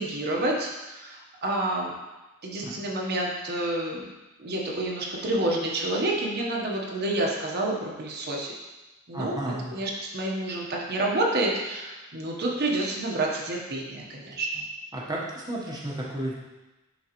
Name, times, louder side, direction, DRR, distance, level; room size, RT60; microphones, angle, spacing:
voice 1, 0.0-1.9 2.4-4.0 4.4-8.5 9.1-9.4 9.7-14.6, right 1 dB, 50° right, -2 dB, 0.9 m, -29 dB
voice 2, 9.1-9.7 14.9-16.3, right 1 dB, 20° right, -5 dB, 1.0 m, -32 dB
9.9 x 3.9 x 3.0 m, 1.1 s
head